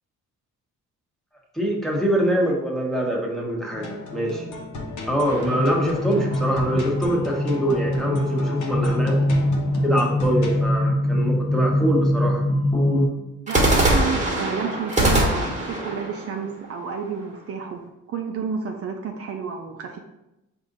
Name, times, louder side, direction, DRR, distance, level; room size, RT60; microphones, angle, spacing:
voice 1, 1.5-4.4 5.1-9.2 9.8-12.4, equal, ahead, -3 dB, 1.0 m, -24 dB
sound 1, 3.7-10.6, left 2 dB, 75° left, 1.0 m, -35 dB
sound 2, 5.2-6.7 13.5-17.4, right 1 dB, 25° right, 1.3 m, -24 dB
sound 3, 5.4-13.1, left 1 dB, 20° left, 1.3 m, -23 dB
voice 2, 13.5-17.8 18.1-20.0, right 6 dB, 50° right, 3 dB, 0.5 m, -30 dB
4.9 x 2.6 x 3.9 m, 0.93 s
cardioid pair, 90°, 30 cm